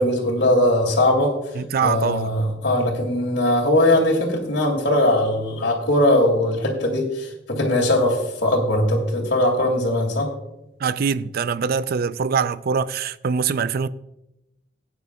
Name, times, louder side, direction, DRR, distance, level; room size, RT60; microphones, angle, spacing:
voice 1, 0.0-1.3 1.8-10.3, left 1 dB, 70° left, 2.4 m, -20 dB
voice 2, 1.6-2.3 10.8-13.9, right 6 dB, 55° right, 0.4 m, -23 dB
17.5 x 9.4 x 2.3 m
head